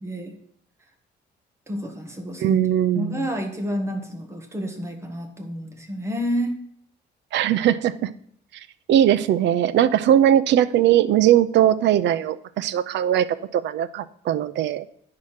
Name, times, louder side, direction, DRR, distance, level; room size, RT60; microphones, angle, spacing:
voice 1, 0.0-0.3 1.7-2.6 2.9-6.6, equal, 15° right, 3 dB, 1.2 m, -29 dB
voice 2, 2.4-3.3 7.3-8.1 8.5-14.9, right 11 dB, 75° right, 15 dB, 0.5 m, -20 dB
10.5 x 4.8 x 5.7 m, 0.66 s
cardioid pair, 175°, 19 cm